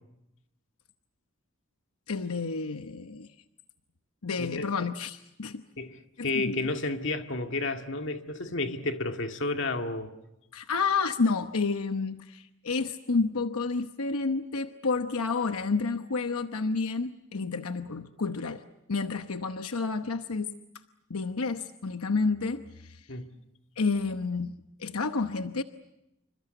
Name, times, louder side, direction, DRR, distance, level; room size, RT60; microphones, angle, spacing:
voice 1, 2.1-3.3 4.2-5.6 6.2-6.7 10.5-20.6 21.1-23.1 23.8-25.6, left 4 dB, 90° left, 1.0 m, -30 dB
voice 2, 4.4-4.7 5.8-6.0 6.2-10.1 23.1-23.3, left 2 dB, 60° left, 2.0 m, -31 dB
28.0 x 25.0 x 8.0 m
head